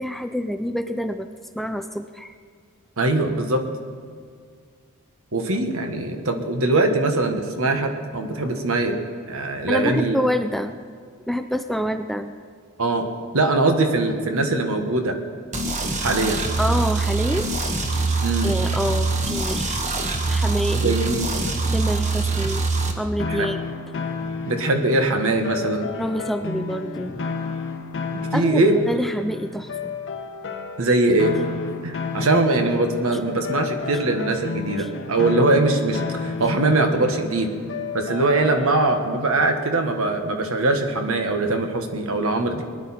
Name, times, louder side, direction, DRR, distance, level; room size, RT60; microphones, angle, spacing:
voice 1, 0.0-2.3 9.7-10.8 11.3-12.3 16.6-17.5 17.9-19.8 20.3-21.0 21.7-22.7 23.0-23.6 26.0-27.3 28.3-29.9 34.8-34.9, equal, ahead, 8 dB, 0.4 m, -27 dB
voice 2, 3.0-3.6 5.3-9.0 9.3-10.2 12.8-13.0 13.3-15.2 16.0-16.4 18.2-18.5 20.8-21.6 23.3-23.5 24.4-25.9 28.3-28.7 30.8-31.3 31.8-37.5 37.9-42.6, right 2 dB, 65° right, 5 dB, 1.5 m, -22 dB
sound 1, 15.5-22.9, right 3 dB, 35° right, 1.3 m, -24 dB
sound 2, 23.2-39.1, left 5 dB, 55° left, 1.1 m, -32 dB
20.0 x 11.0 x 4.3 m, 2.1 s
head